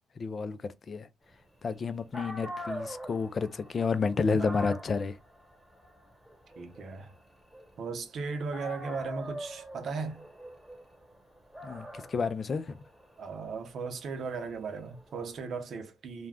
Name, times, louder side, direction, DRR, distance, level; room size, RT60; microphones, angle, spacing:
voice 1, 0.2-1.1 1.6-5.2 11.6-12.7, left 4 dB, 45° left, 0.4 m, -30 dB
Dog, 1.8-1.9 2.1-8.2 8.5-15.3, equal, 5° right, 1.2 m, -44 dB
voice 2, 6.6-7.1 7.8-10.2 13.2-16.3, right 4 dB, 60° right, 0.6 m, -37 dB
2.4 x 2.1 x 3.3 m
cardioid pair, 75°, 0 cm